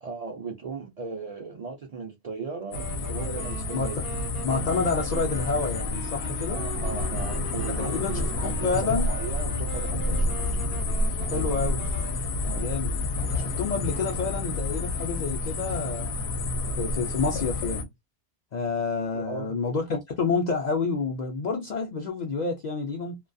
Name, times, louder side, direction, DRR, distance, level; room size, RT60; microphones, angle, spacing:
voice 1, 0.0-4.0 6.5-10.4 12.4-12.7 19.1-19.5, right 4 dB, 55° right, 0.4 m, -37 dB
sound 1, 2.7-17.8, left 2 dB, 80° left, 0.8 m, -29 dB
Wind instrument woodwind instrument, 2.7-12.2, right 9 dB, 70° right, 0.8 m, -42 dB
voice 2, 4.4-6.6 7.8-8.1 8.4-9.1 11.3-11.9 12.6-12.9 13.3-16.2 16.8-17.9 18.5-23.2, left 4 dB, 55° left, 0.5 m, -28 dB
2.2 x 2.2 x 2.5 m
omnidirectional pair, 1.1 m